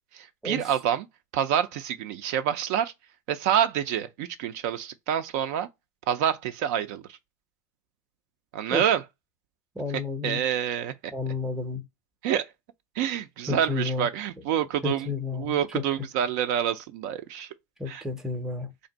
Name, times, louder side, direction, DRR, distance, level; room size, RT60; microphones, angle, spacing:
voice 1, 0.1-1.1 1.3-2.9 3.3-5.7 6.1-7.2 8.5-9.0 10.2-10.9 12.2-12.5 13.0-17.5 17.9-18.0, right 9 dB, 55° right, 0.4 m, -27 dB
voice 2, 9.7-10.4 11.1-11.8 13.5-14.1 14.8-15.8 17.8-18.7, left 3 dB, 5° right, 0.7 m, -31 dB
3.4 x 2.5 x 3.9 m
supercardioid pair, 130°, 10 cm